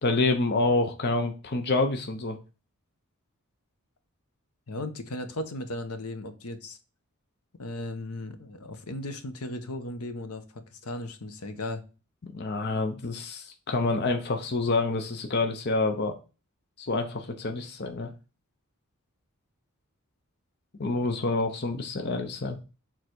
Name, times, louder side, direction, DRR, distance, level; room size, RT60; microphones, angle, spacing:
voice 1, 0.0-2.4 12.2-16.1 16.8-18.1 20.8-22.6, left 3 dB, 50° left, 5 dB, 0.8 m, -27 dB
voice 2, 4.7-6.8 7.6-11.8, left 1 dB, 85° left, 9 dB, 1.1 m, -36 dB
6.5 x 4.0 x 4.5 m, 0.33 s
head